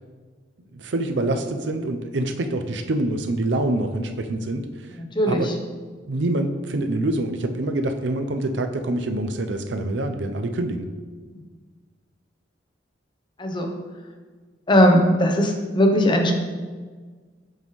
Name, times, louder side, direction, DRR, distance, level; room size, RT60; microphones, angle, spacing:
voice 1, 0.7-5.0 5.3-5.5 6.1-10.9, right 1 dB, 80° right, 7 dB, 0.6 m, -26 dB
voice 2, 4.9-5.5 11.3-11.4 13.4-13.7 14.7-16.3, equal, 25° left, 3 dB, 0.8 m, -19 dB
7.5 x 5.3 x 3.1 m, 1.5 s
head